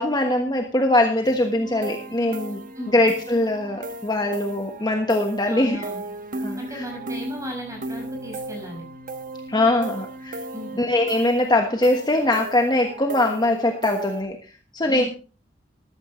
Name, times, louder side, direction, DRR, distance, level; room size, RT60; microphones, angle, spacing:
voice 1, 0.0-2.6 2.9-5.8 6.4-6.8 9.5-10.4 10.8-14.4 14.7-15.0, left 1 dB, 25° left, 3 dB, 1.3 m, -22 dB
sound 1, 1.2-14.2, right 2 dB, 50° right, 1.2 m, -36 dB
voice 2, 5.5-6.0 6.6-8.8 10.5-10.7 14.8-15.1, equal, 20° right, 1 dB, 5.8 m, -35 dB
14.0 x 13.0 x 3.2 m, 0.35 s
head